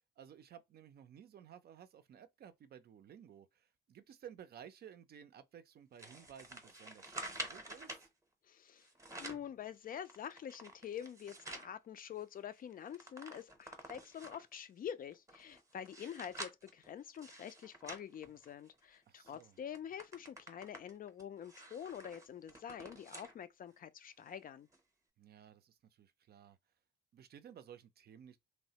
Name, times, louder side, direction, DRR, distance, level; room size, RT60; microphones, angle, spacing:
voice 1, 0.2-8.1 19.1-19.6 25.2-26.6 27.1-28.4, right 9 dB, 55° right, 0.4 m, -56 dB
sound 1, 6.0-8.1 8.8-9.5 10.0-11.7 12.2-12.3 12.5-14.5 15.1-18.9 19.3-19.4 19.7-23.4 23.8-23.9 24.7-24.8, right 1 dB, 15° right, 0.8 m, -49 dB
voice 2, 8.4-8.9 9.2-24.7, left 9 dB, 45° left, 0.4 m, -46 dB
3.1 x 2.0 x 2.8 m
cardioid pair, 90°, 20 cm